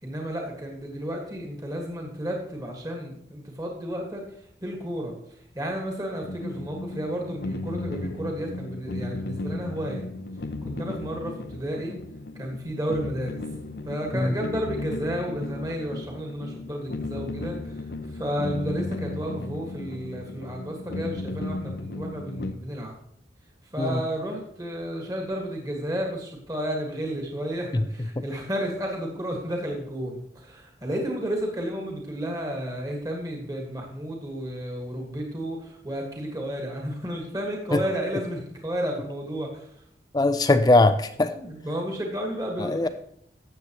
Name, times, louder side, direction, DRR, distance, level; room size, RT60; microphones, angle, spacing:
voice 1, 0.0-10.1 10.6-12.0 12.3-13.4 13.8-22.9 23.6-39.8 41.3-42.9, equal, 20° right, 0 dB, 1.6 m, -32 dB
sound 1, 6.2-22.5, left 2 dB, 65° left, 0.6 m, -35 dB
voice 2, 40.1-41.3 42.6-42.9, left 2 dB, 20° left, 10 dB, 0.4 m, -20 dB
13.0 x 8.0 x 3.0 m, 0.71 s
head